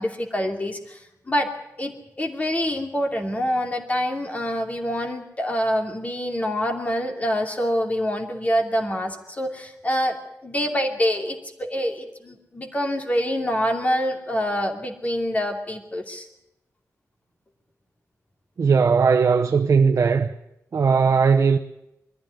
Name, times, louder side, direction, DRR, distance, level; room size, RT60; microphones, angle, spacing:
voice 1, 0.0-1.5 1.8-16.3, equal, 25° left, 2.7 m, -26 dB
voice 2, 18.6-20.3 20.7-21.6, right 5 dB, 60° right, 0.9 m, -18 dB
22.0 x 14.0 x 9.4 m
wide cardioid pair, 165°, 6 cm